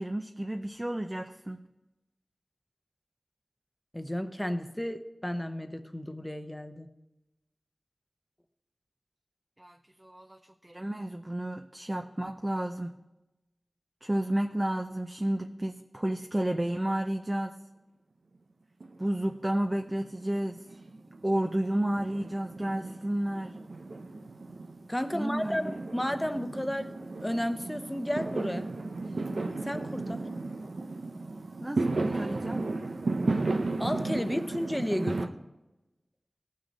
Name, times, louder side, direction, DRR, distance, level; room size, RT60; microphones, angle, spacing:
voice 1, 0.0-1.6 9.6-13.0 14.0-17.6 19.0-20.7 21.2-23.6 25.1-25.8 31.6-32.6, right 1 dB, 25° right, 4 dB, 0.6 m, -31 dB
voice 2, 3.9-6.9 24.9-28.7 29.6-30.3 33.8-35.2, equal, 10° left, 8 dB, 0.9 m, -33 dB
Fireworks, 18.8-19.7 20.0-35.3, right 3 dB, 90° right, 0.7 m, -34 dB
18.0 x 6.3 x 4.2 m, 1.0 s
wide cardioid pair, 60°, 0 cm